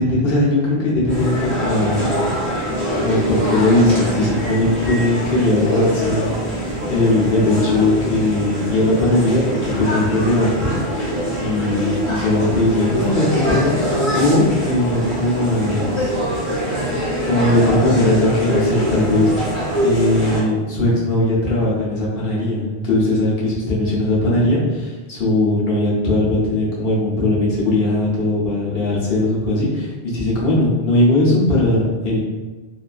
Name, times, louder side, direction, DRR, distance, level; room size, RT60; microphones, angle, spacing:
voice 1, 0.0-2.2 3.0-10.7 11.4-16.1 17.2-19.3 19.8-32.2, left 1 dB, 60° left, -7 dB, 0.9 m, -19 dB
sound 1, 1.1-20.4, equal, 30° left, 1.1 m, -23 dB
2.7 x 2.4 x 2.4 m, 1.3 s
omnidirectional pair, 1.1 m